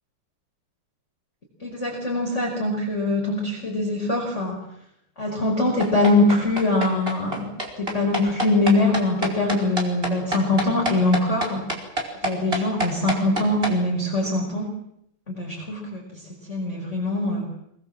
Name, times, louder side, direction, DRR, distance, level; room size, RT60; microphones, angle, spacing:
voice 1, 1.6-4.6 5.2-7.5 7.8-11.6 12.2-14.7 15.3-17.5, left 2 dB, 15° left, -2 dB, 5.2 m, -23 dB
sound 1, 5.8-13.7, right 1 dB, 15° right, 4.8 m, -27 dB
26.5 x 23.0 x 7.7 m, 0.76 s
omnidirectional pair, 5.1 m